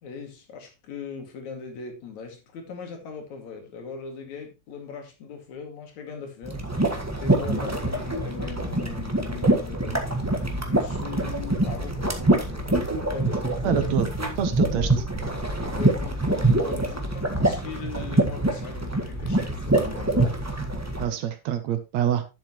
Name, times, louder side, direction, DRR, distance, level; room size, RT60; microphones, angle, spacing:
voice 1, 0.0-6.7 7.2-10.1 10.6-13.9 15.5-20.4, left 6 dB, 70° left, 3.5 m, -39 dB
sound 1, 6.4-21.0, right 2 dB, 20° right, 0.4 m, -25 dB
voice 2, 13.6-14.1 14.4-15.0 21.0-22.3, right 10 dB, 70° right, 2.2 m, -26 dB
11.5 x 7.4 x 3.0 m
omnidirectional pair, 3.3 m